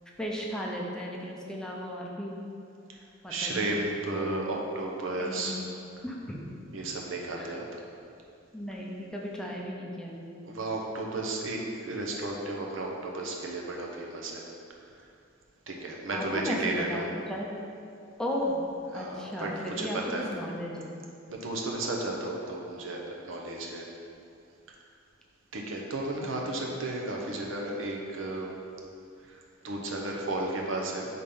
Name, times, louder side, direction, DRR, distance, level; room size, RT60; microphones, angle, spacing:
voice 1, 0.2-2.4 3.2-3.8 4.1-4.3 5.2-5.5 6.0-6.4 7.4-7.5 8.5-10.4 16.1-16.6 16.9-17.5 18.2-18.6 18.9-20.9, equal, 5° left, -3 dB, 0.6 m, -35 dB
voice 2, 3.3-5.6 6.7-7.8 10.4-14.4 15.7-17.1 18.9-20.3 21.3-23.9 25.5-28.5 29.3-29.4 29.6-31.1, right 2 dB, 75° right, -1 dB, 0.9 m, -33 dB
5.2 x 4.2 x 5.3 m, 2.5 s
head